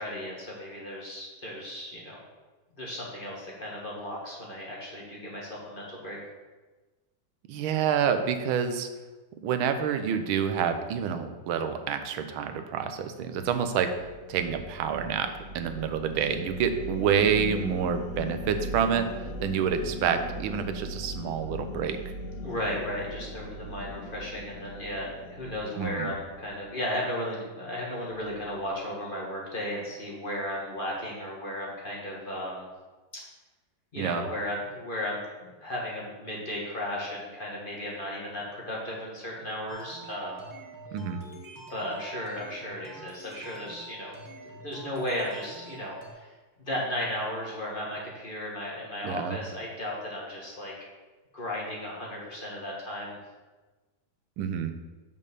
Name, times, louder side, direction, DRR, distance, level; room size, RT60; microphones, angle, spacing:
voice 1, 0.0-2.2 2.7-6.2 22.4-32.7 33.9-35.2 35.6-40.5 41.7-44.1 44.4-46.3 46.6-50.7 51.3-53.2, left 1 dB, 30° left, -4 dB, 1.4 m, -35 dB
voice 2, 7.5-8.9 9.4-13.9 14.3-19.1 19.4-22.0 25.8-26.1 34.0-34.3 40.9-41.2 49.0-49.4 54.4-54.7, right 7 dB, 85° right, 8 dB, 1.5 m, -28 dB
sound 1, 13.3-26.8, left 1 dB, 75° left, 0.7 m, -39 dB
sound 2, 39.7-46.1, right 3 dB, 20° right, 0.6 m, -46 dB
5.5 x 5.4 x 6.6 m, 1.2 s
omnidirectional pair, 2.2 m